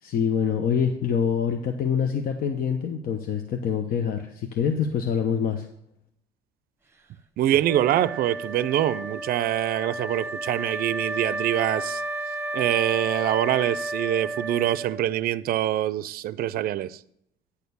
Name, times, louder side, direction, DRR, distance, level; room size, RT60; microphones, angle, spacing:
voice 1, 0.0-5.7, left 7 dB, 60° left, 0.8 m, -25 dB
voice 2, 7.4-12.0 12.5-17.0, right 12 dB, 60° right, 0.5 m, -25 dB
Wind instrument woodwind instrument, 7.6-15.2, right 1 dB, 15° right, 1.1 m, -32 dB
9.7 x 4.4 x 6.8 m
cardioid pair, 110°, 17 cm